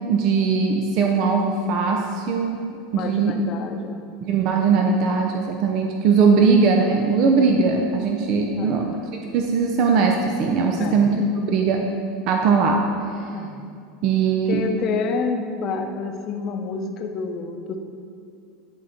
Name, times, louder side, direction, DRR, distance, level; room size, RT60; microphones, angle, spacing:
voice 1, 0.0-3.3 4.2-8.9 9.3-11.9 12.3-12.8 14.0-14.6, right 5 dB, 55° right, 2 dB, 0.6 m, -20 dB
voice 2, 2.9-4.2 6.5-6.6 8.6-8.9 10.8-11.1 13.3-13.6 14.5-17.8, left 5 dB, 45° left, 5 dB, 0.7 m, -29 dB
10.0 x 3.8 x 4.3 m, 2.4 s
hypercardioid pair, 95°, 0 cm